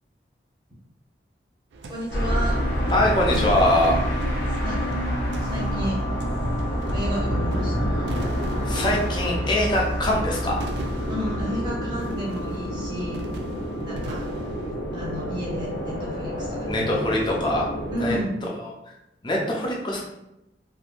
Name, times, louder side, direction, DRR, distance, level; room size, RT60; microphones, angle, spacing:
sound 1, 1.7-14.7, right 1 dB, 70° right, 0.4 m, -39 dB
voice 1, 1.9-2.6 4.6-4.9 5.4-6.3 6.9-8.1 11.1-13.2 13.8-14.3 14.9-17.4 17.9-18.4, equal, 25° right, -6 dB, 1.0 m, -32 dB
sound 2, 2.1-18.2, equal, 80° left, 0.8 m, -27 dB
voice 2, 2.9-3.9 8.7-10.6 16.7-17.7 18.0-18.2 18.6-18.7 19.2-20.0, left 1 dB, 25° left, -2 dB, 0.6 m, -23 dB
3.4 x 2.6 x 2.5 m, 0.88 s
head